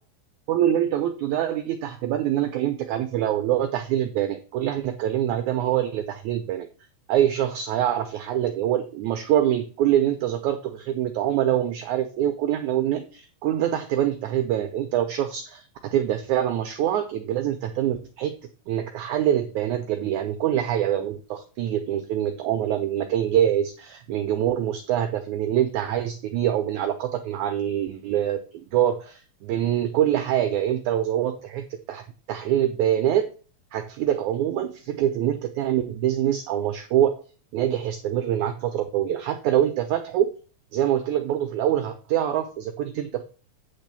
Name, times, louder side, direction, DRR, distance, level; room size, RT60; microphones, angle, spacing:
voice 1, 0.5-6.7 7.1-18.3 18.7-33.3 33.7-37.2 37.5-40.3 40.7-43.2, right 11 dB, 90° right, 7 dB, 1.7 m, -25 dB
9.0 x 3.3 x 6.7 m, 0.37 s
omnidirectional pair, 4.2 m